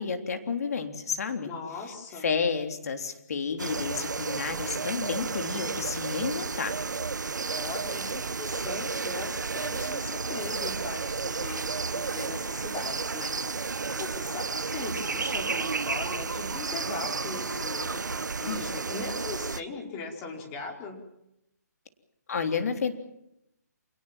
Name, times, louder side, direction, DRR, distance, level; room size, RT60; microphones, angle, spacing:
voice 1, 0.0-1.5 2.1-6.7 18.4-18.7 22.3-22.9, left 5 dB, 60° left, 7 dB, 3.5 m, -31 dB
voice 2, 1.4-2.3 7.6-21.0, left 4 dB, 20° left, 2 dB, 4.8 m, -39 dB
sound 1, 3.6-19.6, right 4 dB, 90° right, 1.0 m, -32 dB
28.0 x 19.0 x 7.6 m, 0.82 s
hypercardioid pair, 155°, 9 cm